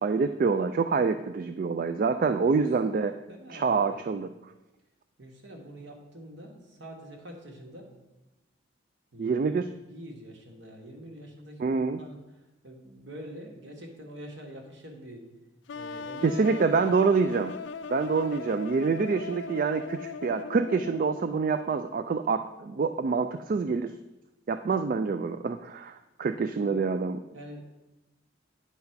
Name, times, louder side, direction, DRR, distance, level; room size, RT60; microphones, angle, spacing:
voice 1, 0.0-3.1 3.5-4.3 9.2-9.7 11.6-12.0 16.2-17.5 17.9-23.9 24.5-27.2, right 4 dB, 45° right, 9 dB, 0.3 m, -26 dB
voice 2, 2.2-2.7 3.3-4.0 5.2-7.9 9.1-9.6 9.9-15.3 15.7-16.7 26.6-26.9 27.3-27.6, equal, 60° right, 1 dB, 1.6 m, -45 dB
sound 1, 15.7-21.5, left 4 dB, 65° left, 0.4 m, -39 dB
9.5 x 4.1 x 5.7 m, 0.99 s
head